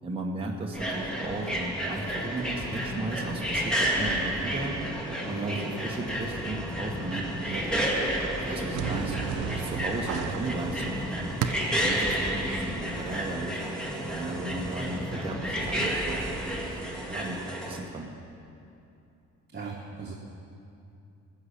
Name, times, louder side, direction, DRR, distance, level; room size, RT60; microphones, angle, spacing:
voice 1, 0.0-4.8 5.2-7.7 8.4-11.3 11.8-13.6 14.1-16.7 17.0-18.1, right 2 dB, 20° right, -1 dB, 1.1 m, -36 dB
sound 1, 0.7-17.8, right 1 dB, 5° left, 1.9 m, -31 dB
sound 2, 0.8-15.4, left 2 dB, 60° left, 1.9 m, -48 dB
sound 3, 8.7-11.9, right 7 dB, 80° right, 0.7 m, -34 dB
voice 2, 19.5-20.1, right 4 dB, 35° right, -2 dB, 1.4 m, -38 dB
14.0 x 6.6 x 8.4 m, 2.7 s
cardioid pair, 90°, 30 cm